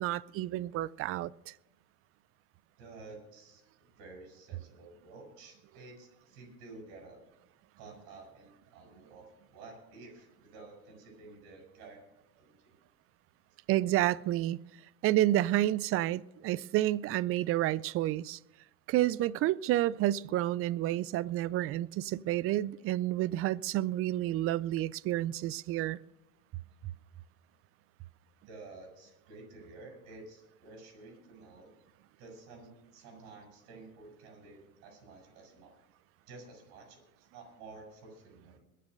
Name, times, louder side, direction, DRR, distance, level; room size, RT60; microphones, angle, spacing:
voice 1, 0.0-1.5 13.7-14.6 15.0-18.4 18.9-26.0, right 14 dB, 35° right, 0.4 m, -30 dB
voice 2, 2.8-7.2 7.8-12.1 12.4-12.7 28.5-31.8 32.2-35.7 36.3-37.0 37.3-38.6, right 3 dB, 60° right, 7.2 m, -51 dB
21.5 x 7.4 x 6.6 m
hypercardioid pair, 95°, 42 cm